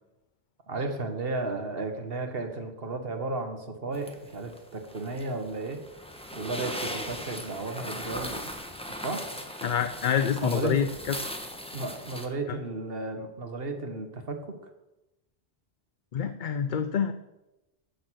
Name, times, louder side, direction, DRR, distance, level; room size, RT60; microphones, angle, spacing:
voice 1, 0.7-5.8 6.3-8.4 8.9-9.3 10.4-10.8 11.7-14.4, right 2 dB, 60° right, 6 dB, 1.6 m, -33 dB
sound 1, 3.9-12.3, equal, 5° left, 1.2 m, -39 dB
voice 2, 9.6-11.2 16.1-17.1, left 8 dB, 55° left, 10 dB, 0.7 m, -27 dB
14.0 x 6.6 x 6.3 m, 0.97 s
omnidirectional pair, 1.1 m